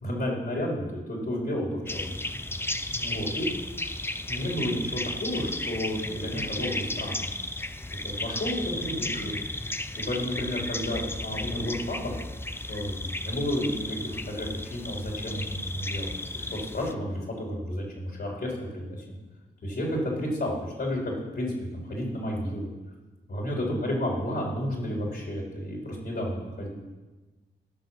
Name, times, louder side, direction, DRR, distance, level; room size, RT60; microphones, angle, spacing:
voice 1, 0.0-2.4 3.0-3.5 4.3-7.3 7.9-9.4 10.0-12.1 12.7-16.1 16.5-19.0 19.6-22.7 23.3-26.7, equal, 55° left, -2 dB, 4.2 m, -31 dB
sound 1, 1.9-16.9, left 2 dB, 10° left, 0.6 m, -34 dB
17.5 x 6.2 x 5.9 m, 1.2 s
cardioid pair, 55°, 21 cm